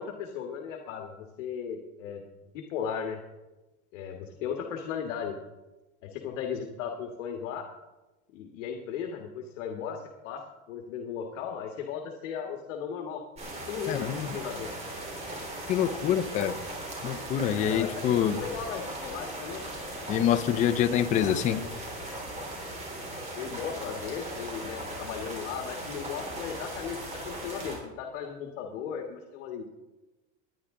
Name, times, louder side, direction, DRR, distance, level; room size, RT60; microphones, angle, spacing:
voice 1, 0.0-2.2 2.5-3.2 3.9-5.4 6.0-7.7 8.3-13.2 13.6-14.7 17.6-19.7 21.2-21.3 23.4-27.0 27.2-29.7, left 7 dB, 75° left, 3 dB, 1.6 m, -36 dB
sound 1, 13.4-27.8, right 1 dB, 15° right, 3.6 m, -38 dB
voice 2, 13.9-14.3 15.7-16.6 17.0-18.4 20.1-21.6, left 9 dB, 20° left, 9 dB, 0.5 m, -26 dB
20.5 x 10.0 x 3.7 m, 1.1 s
supercardioid pair, 160°, 39 cm